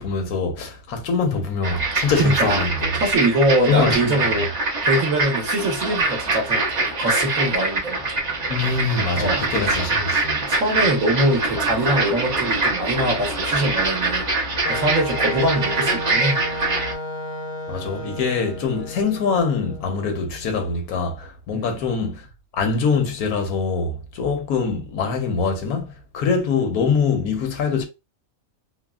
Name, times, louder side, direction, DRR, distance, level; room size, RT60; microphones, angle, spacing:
voice 1, 0.0-2.9 3.7-4.2 8.5-10.4 17.7-22.3 22.5-27.8, left 5 dB, 90° left, 1.3 m, -24 dB
sound 1, 1.6-16.9, right 3 dB, 35° right, 0.9 m, -24 dB
voice 2, 2.1-2.6 3.0-4.5 4.9-8.0 9.1-9.5 10.5-14.2 14.7-16.4 21.5-21.8, right 1 dB, 65° right, 1.4 m, -23 dB
Wind instrument woodwind instrument, 14.6-20.5, equal, 65° left, 0.8 m, -32 dB
3.4 x 2.1 x 2.3 m
omnidirectional pair, 1.5 m